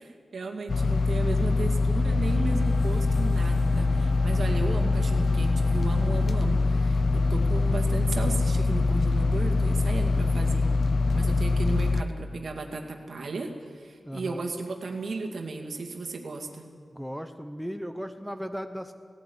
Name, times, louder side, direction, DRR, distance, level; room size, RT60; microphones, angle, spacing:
voice 1, 0.0-10.7 11.1-16.7, right 3 dB, 60° right, 4 dB, 2.2 m, -35 dB
sound 1, 0.7-12.0, left 3 dB, 50° left, 0.6 m, -24 dB
sound 2, 2.3-6.4, right 1 dB, 20° right, 1.6 m, -48 dB
voice 2, 14.0-14.5 16.9-18.9, equal, ahead, 7 dB, 0.8 m, -36 dB
17.0 x 17.0 x 9.8 m, 2.1 s
wide cardioid pair, 170°, 0 cm